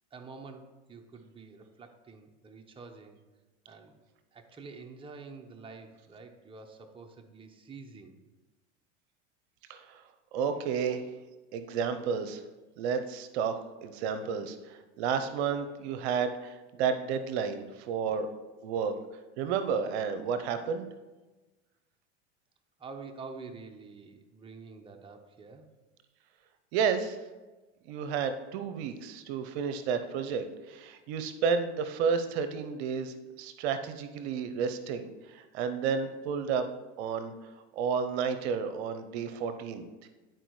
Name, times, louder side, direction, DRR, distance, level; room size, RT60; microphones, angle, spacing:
voice 1, 0.1-3.2 3.7-4.0 4.3-8.2 17.4-17.5 22.8-25.7, right 4 dB, 15° right, 3 dB, 0.8 m, -47 dB
voice 2, 10.3-11.0 11.5-12.4 12.8-18.3 18.6-18.9 19.4-20.9 26.7-27.2 27.9-36.6 37.0-37.3 37.7-39.9, right 6 dB, 65° right, 10 dB, 0.7 m, -31 dB
11.0 x 4.5 x 3.1 m, 1.2 s
hypercardioid pair, 95°, 35 cm